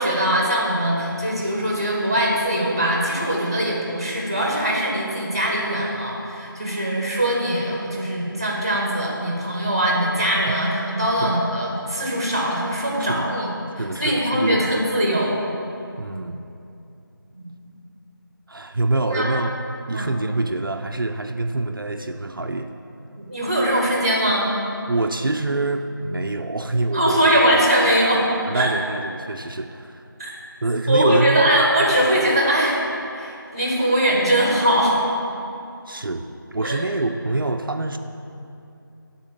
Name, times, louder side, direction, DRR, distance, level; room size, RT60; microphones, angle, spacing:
voice 1, 0.0-13.5 14.0-15.4 17.3-17.5 18.9-19.3 19.9-20.1 23.2-24.5 26.9-28.2 28.5-28.7 30.2-30.3 30.9-32.8 33.1-35.0 36.6-36.8, right 1 dB, 15° right, -2 dB, 0.9 m, -21 dB
voice 2, 13.8-14.7 16.0-16.4 18.5-19.5 19.9-22.7 24.9-27.2 28.5-30.0 30.6-31.4 35.9-38.0, right 2 dB, 70° right, 5 dB, 0.5 m, -25 dB
10.0 x 4.0 x 7.0 m, 2.7 s
figure-of-eight pair, 175°, 12 cm